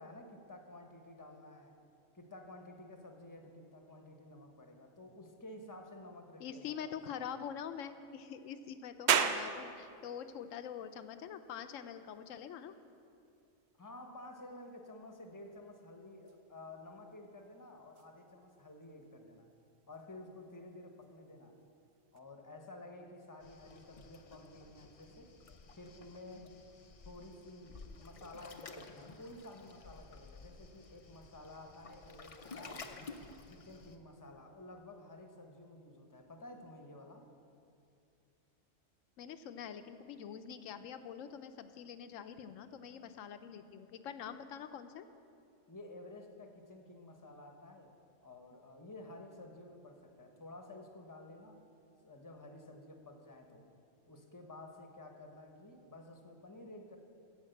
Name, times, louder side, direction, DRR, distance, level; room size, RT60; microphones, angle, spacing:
voice 1, 0.0-1.8 2.1-7.2 13.8-19.5 19.9-21.6 22.1-25.3 25.7-26.5 27.0-32.9 33.5-37.3 45.7-47.9 48.2-51.6 52.0-53.7 54.1-57.0, left 2 dB, 15° left, 4 dB, 0.8 m, -52 dB
voice 2, 6.4-12.7 39.2-45.1, left 8 dB, 80° left, 10 dB, 1.0 m, -45 dB
sound 1, 9.1-22.2, right 8 dB, 65° right, 0.8 m, -41 dB
Waves surf, 23.4-34.0, left 4 dB, 50° left, 0.4 m, -53 dB
15.0 x 5.1 x 7.8 m, 2.6 s
omnidirectional pair, 1.3 m